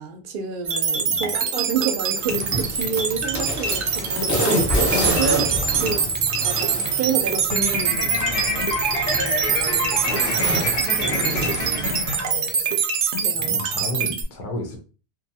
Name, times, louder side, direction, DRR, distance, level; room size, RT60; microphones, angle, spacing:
voice 1, 0.0-5.4 5.8-6.0 6.4-8.1 9.0-12.0 13.2-13.6, right 5 dB, 60° right, 0.7 m, -30 dB
sound 1, 0.7-14.2, right 6 dB, 85° right, 0.9 m, -24 dB
sound 2, 2.2-12.0, equal, 15° left, 0.9 m, -28 dB
voice 2, 5.2-5.9 8.0-8.1 13.4-14.8, left 1 dB, 55° left, 0.8 m, -33 dB
sound 3, 7.5-12.7, left 3 dB, 75° left, 1.0 m, -28 dB
2.6 x 2.3 x 2.7 m
omnidirectional pair, 1.1 m